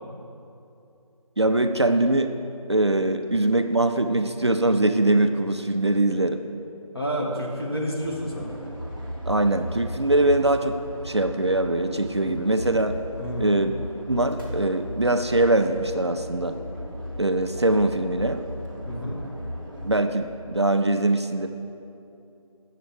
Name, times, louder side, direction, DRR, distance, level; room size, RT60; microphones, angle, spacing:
voice 1, 1.4-2.3 2.7-6.5 9.3-10.8 11.0-13.0 13.4-13.7 14.1-16.6 17.2-18.4 19.8-21.5, right 2 dB, 50° right, 7 dB, 0.5 m, -22 dB
voice 2, 6.9-8.5 13.2-13.5 18.8-19.2, equal, 40° left, -2 dB, 1.7 m, -29 dB
sound 1, 8.0-20.0, equal, 5° right, 1.1 m, -36 dB
9.0 x 7.4 x 7.6 m, 2.7 s
figure-of-eight pair, 175°, 19 cm